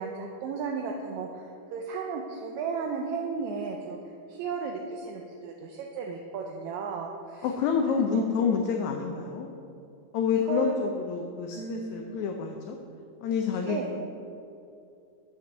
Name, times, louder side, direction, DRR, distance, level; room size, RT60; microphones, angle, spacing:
voice 1, 0.0-4.0 4.3-7.5 7.9-8.3 10.3-10.8 11.5-12.4 13.7-13.9, right 5 dB, 75° right, 1 dB, 1.9 m, -35 dB
voice 2, 7.4-9.5 10.1-12.8 13.2-14.0, left 6 dB, 75° left, 3 dB, 1.9 m, -28 dB
7.4 x 7.0 x 6.3 m, 2.6 s
omnidirectional pair, 3.6 m